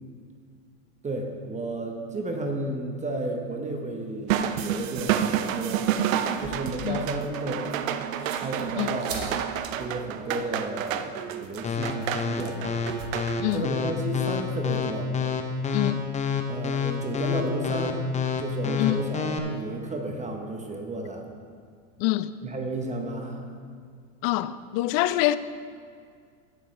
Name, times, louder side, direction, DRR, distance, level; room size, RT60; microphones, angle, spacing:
voice 1, 1.0-5.9 6.4-7.6 8.3-9.4 9.8-12.8 13.1-13.2 13.5-15.1 16.5-18.0 18.4-21.3 22.4-23.4, right 2 dB, 15° right, 1.0 m, -33 dB
sound 1, 4.3-13.6, right 9 dB, 75° right, 0.7 m, -29 dB
sound 2, 6.2-13.1, right 3 dB, 45° right, 1.9 m, -44 dB
sound 3, 11.6-19.4, left 6 dB, 15° left, 0.8 m, -27 dB
voice 2, 15.7-16.1 18.8-19.1 22.0-22.3 24.2-25.4, left 15 dB, 50° left, 0.5 m, -25 dB
16.5 x 6.8 x 3.3 m
hypercardioid pair, 110°, 40 cm